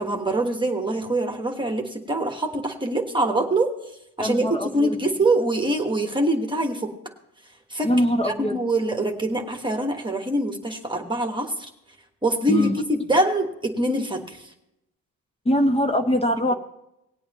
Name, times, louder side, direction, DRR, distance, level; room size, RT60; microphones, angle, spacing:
voice 1, 0.0-6.9 7.7-7.9 8.2-11.7 12.2-14.5, right 1 dB, 15° right, 3 dB, 1.4 m, -24 dB
voice 2, 4.2-5.0 7.8-8.6 12.5-12.7 15.5-16.5, equal, 20° left, 6 dB, 0.7 m, -22 dB
19.0 x 8.6 x 2.9 m, 0.86 s
cardioid pair, 85°, 33 cm